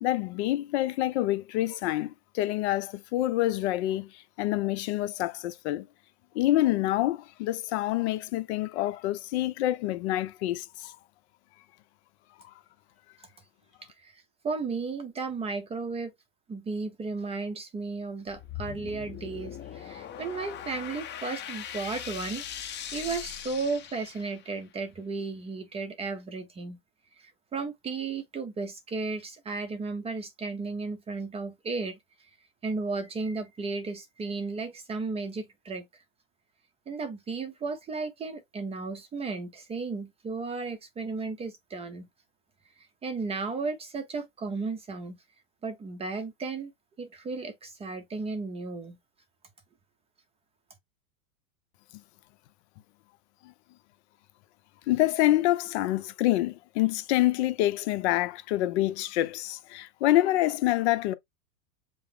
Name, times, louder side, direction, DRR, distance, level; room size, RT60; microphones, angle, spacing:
voice 1, 0.0-5.9 6.3-11.0 54.9-61.1, left 15 dB, 50° left, 0.8 m, -27 dB
voice 2, 14.0-16.1 16.5-22.4 22.9-26.8 27.2-32.0 32.6-35.9 36.9-42.1 43.0-45.2 45.6-46.7 47.0-49.0, right 4 dB, 15° right, 0.6 m, -34 dB
sound 1, 18.3-24.6, left 10 dB, 25° left, 0.9 m, -40 dB
5.5 x 2.1 x 3.4 m
supercardioid pair, 135°, 42 cm